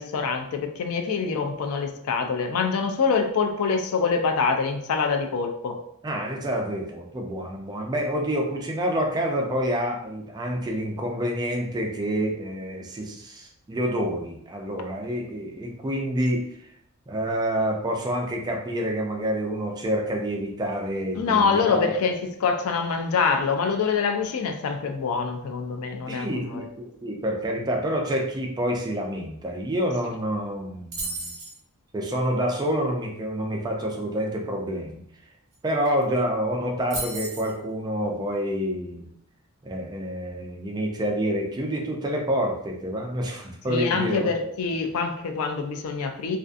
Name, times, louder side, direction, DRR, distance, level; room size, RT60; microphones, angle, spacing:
voice 1, 0.0-5.8 21.2-26.6 43.7-46.4, left 5 dB, 75° left, 5 dB, 0.4 m, -25 dB
voice 2, 6.0-16.7 17.1-21.9 26.1-31.3 31.9-35.0 35.6-39.1 39.6-44.5, equal, 20° right, 1 dB, 0.3 m, -28 dB
sound 1, 30.9-31.6 35.5-35.6 35.8-36.2 36.9-37.5, right 2 dB, 60° right, 0.8 m, -33 dB
2.5 x 2.4 x 2.4 m, 0.70 s
head